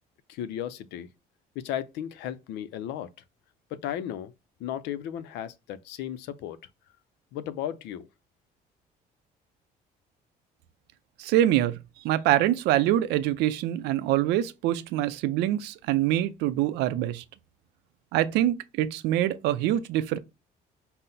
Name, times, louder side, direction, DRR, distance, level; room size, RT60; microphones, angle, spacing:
voice 1, 0.3-1.1 1.6-3.1 3.7-4.3 4.6-6.6 7.3-8.1, left 10 dB, 90° left, 0.5 m, -35 dB
voice 2, 11.2-11.8 12.0-17.2 18.1-20.2, right 13 dB, 90° right, 0.5 m, -25 dB
5.6 x 2.0 x 3.9 m
cardioid pair, 110°, 17 cm